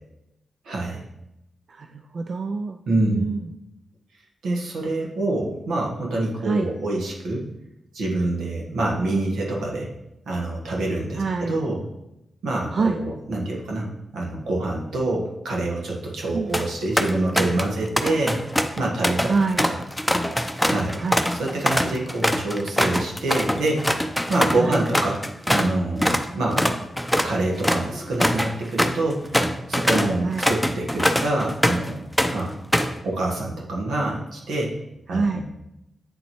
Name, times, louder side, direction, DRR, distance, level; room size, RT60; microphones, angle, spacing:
voice 1, 0.6-1.0 2.9-3.2 4.4-7.4 7.9-9.9 10.3-11.8 12.4-19.3 19.6-19.8 20.7-21.0 21.3-23.9 24.3-26.7 27.2-29.3 29.7-32.0 32.3-32.5 33.0-34.7 35.1-35.4, right 2 dB, 85° right, -2 dB, 1.3 m, -26 dB
voice 2, 1.7-2.8 3.1-3.4 6.4-6.7 11.2-11.6 12.7-13.0 16.3-16.5 19.3-19.7 21.0-21.2 24.6-24.8 30.2-30.5 35.1-35.4, right 4 dB, 60° right, 6 dB, 0.3 m, -25 dB
sound 1, 16.3-16.7 17.0-17.7 18.0-25.7 26.0-26.3 26.6-31.9 32.2-33.0, equal, 5° left, 0.6 m, -23 dB
8.4 x 4.1 x 3.0 m, 0.88 s
supercardioid pair, 50°, 0 cm